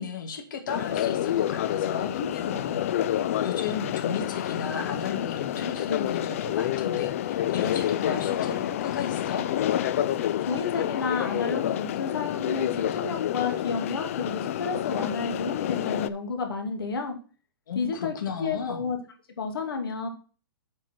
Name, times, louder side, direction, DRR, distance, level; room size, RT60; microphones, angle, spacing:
voice 1, 0.0-9.4 17.7-18.9, left 6 dB, 55° left, 4 dB, 2.2 m, -34 dB
sound 1, 0.7-16.1, left 11 dB, 35° left, 0.4 m, -28 dB
voice 2, 10.4-17.2 17.7-19.0 19.4-20.1, left 4 dB, 75° left, 4 dB, 2.5 m, -31 dB
7.6 x 4.5 x 6.1 m, 0.37 s
hypercardioid pair, 165°, 12 cm